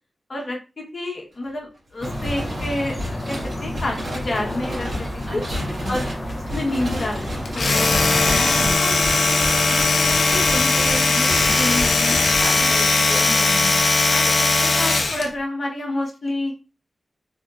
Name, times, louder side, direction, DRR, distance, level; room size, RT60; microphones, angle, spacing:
voice 1, 0.3-5.4 5.9-6.1 6.5-8.0 8.7-9.3 9.7-13.5 14.1-16.6, left 1 dB, 50° left, 1 dB, 1.1 m, -29 dB
sound 1, 2.0-8.7, left 1 dB, 25° left, 0.7 m, -31 dB
sound 2, 2.0-13.2, equal, 60° right, 1.7 m, -32 dB
voice 2, 5.3-6.1 8.3-8.9 12.6-12.7 13.2-13.8, equal, 25° right, -5 dB, 2.2 m, -33 dB
Domestic sounds home sounds, 7.5-15.3, left 3 dB, 70° left, 0.7 m, -19 dB
3.7 x 3.5 x 2.4 m, 0.30 s
wide cardioid pair, 135°, 0 cm